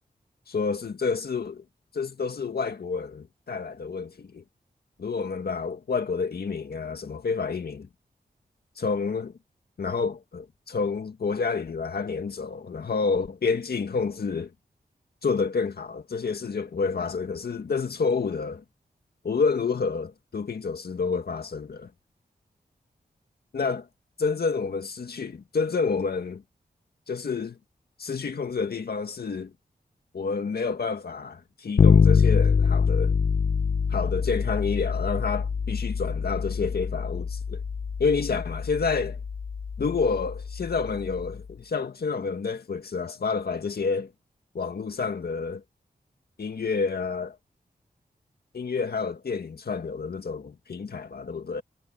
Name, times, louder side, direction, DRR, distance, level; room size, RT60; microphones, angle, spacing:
voice 1, 0.5-1.6 1.9-4.4 5.0-7.9 8.8-9.3 9.8-14.5 15.2-18.6 19.2-21.9 23.5-23.9 24.2-26.4 27.1-27.6 28.0-29.5 30.1-33.1 33.9-37.6 38.0-39.2 39.8-44.1 44.5-45.6 46.4-47.4 48.5-51.6, left 5 dB, 70° left, 2.0 m, -29 dB
Bass guitar, 31.8-41.4, left 6 dB, 55° left, 0.9 m, -25 dB
wide cardioid pair, 75°, 17 cm